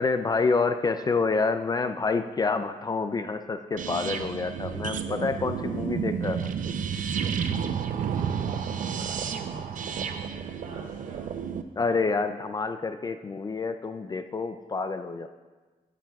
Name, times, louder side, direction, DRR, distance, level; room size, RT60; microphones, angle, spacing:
voice 1, 0.0-6.5 11.8-15.3, left 4 dB, 30° left, 9 dB, 0.4 m, -28 dB
sound 1, 3.8-11.6, right 7 dB, 70° right, 0.5 m, -31 dB
voice 2, 8.1-11.3, right 2 dB, 90° right, -7 dB, 1.8 m, -45 dB
16.5 x 9.9 x 2.3 m, 1.3 s
wide cardioid pair, 165°, 14 cm